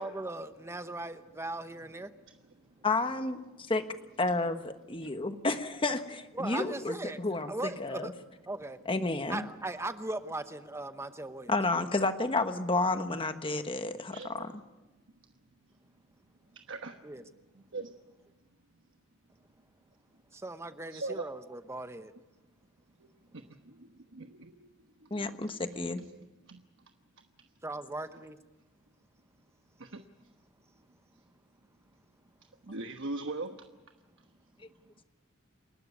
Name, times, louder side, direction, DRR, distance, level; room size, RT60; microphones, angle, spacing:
voice 1, 0.0-2.1 6.3-7.2 7.5-8.1 8.5-8.8 9.3-11.5 17.0-17.2 20.3-22.1 27.6-28.4, right 2 dB, 15° right, 10 dB, 0.9 m, -38 dB
voice 2, 2.8-3.4 3.7-3.9 4.2-8.1 8.8-9.5 11.5-14.5 25.1-26.0, left 3 dB, 25° left, 8 dB, 1.3 m, -31 dB
voice 3, 14.1-14.4 16.7-17.0 17.5-17.9 20.9-21.2 23.0-23.1 23.6-24.7 25.0-25.3 26.5-26.6 29.8-30.0 32.6-33.6, right 3 dB, 60° right, 6 dB, 1.1 m, -40 dB
28.5 x 12.5 x 9.5 m, 1.1 s
head